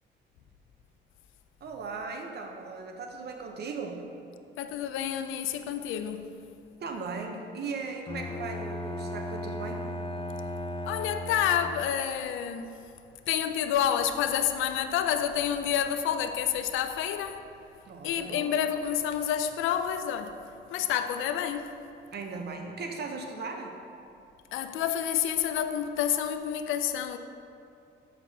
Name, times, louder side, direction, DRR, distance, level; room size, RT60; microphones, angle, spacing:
voice 1, 1.6-4.0 6.8-9.9 17.9-18.5 22.1-23.8, right 4 dB, 55° right, 0.8 m, -38 dB
voice 2, 4.6-6.3 10.9-12.7 13.3-17.5 18.0-21.8 24.5-27.2, left 9 dB, 85° left, 0.4 m, -29 dB
Bowed string instrument, 8.1-12.0, left 1 dB, 25° left, 0.5 m, -36 dB
7.1 x 5.8 x 2.8 m
cardioid pair, 90°, 20 cm